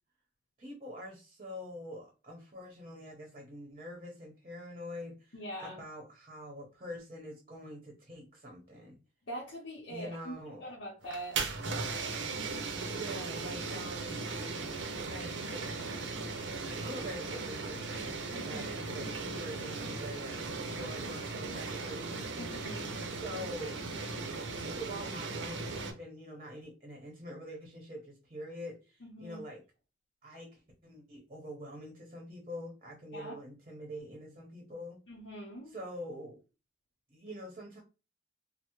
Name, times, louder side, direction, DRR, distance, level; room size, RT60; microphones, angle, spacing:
voice 1, 0.6-9.0 9.9-10.7 12.6-14.3 15.1-16.1 16.4-16.5 16.8-22.3 23.1-23.8 24.6-29.6 30.2-35.0 35.7-36.4 37.1-37.8, equal, 35° right, 0.7 m, -45 dB
voice 2, 5.3-5.8 9.3-11.4 18.3-19.1 22.4-23.0 29.0-29.4 33.1-33.4 35.1-35.7, right 1 dB, 80° left, 0.8 m, -43 dB
sound 1, 11.0-25.9, right 3 dB, 85° right, 0.6 m, -37 dB
3.2 x 2.1 x 2.9 m
head